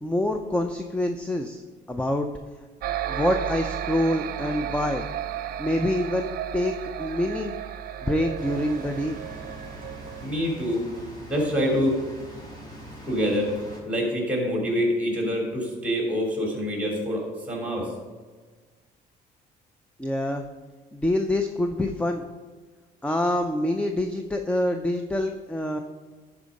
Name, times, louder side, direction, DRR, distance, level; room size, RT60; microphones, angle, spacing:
voice 1, 0.0-1.6 1.9-2.3 3.1-5.1 5.6-7.6 8.0-9.2 20.0-20.4 20.9-22.2 23.0-25.8, left 1 dB, 5° left, 5 dB, 0.5 m, -26 dB
sound 1, 2.8-10.2, right 10 dB, 60° right, 0.6 m, -33 dB
sound 2, 8.4-13.8, right 1 dB, 25° left, 2.8 m, -42 dB
voice 2, 10.2-10.9 11.3-11.9 13.1-13.5 13.8-17.9, equal, 10° right, -1 dB, 3.1 m, -26 dB
11.5 x 4.8 x 5.2 m, 1.4 s
cardioid pair, 110°, 17 cm